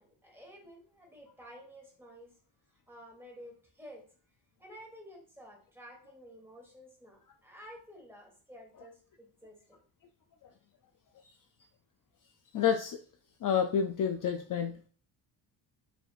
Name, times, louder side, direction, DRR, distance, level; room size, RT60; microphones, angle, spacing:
voice 1, 0.0-2.3 2.9-4.0 4.6-9.8, equal, 5° right, 0 dB, 1.4 m, -52 dB
voice 2, 12.5-13.0 13.4-14.7, left 7 dB, 45° left, 5 dB, 0.4 m, -29 dB
4.9 x 3.4 x 2.4 m, 0.43 s
cardioid pair, 110°, 45 cm